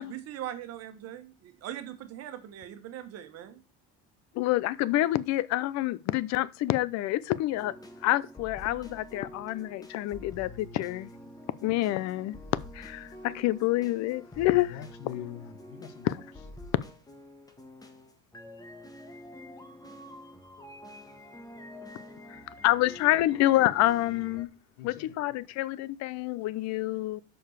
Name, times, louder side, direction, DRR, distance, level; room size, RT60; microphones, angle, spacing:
voice 1, 0.0-3.6, right 11 dB, 60° right, 1.5 m, -41 dB
voice 2, 4.3-7.7 8.0-11.1 11.6-12.4 12.7-14.8 16.0-16.1 22.6-24.5 24.8-27.2, left 16 dB, 65° left, 0.7 m, -27 dB
sound 1, 7.5-24.4, left 1 dB, 15° left, 1.4 m, -47 dB
voice 3, 14.6-16.2 24.8-25.2, left 10 dB, 85° left, 1.3 m, -43 dB
6.7 x 5.4 x 6.6 m
cardioid pair, 120°, 29 cm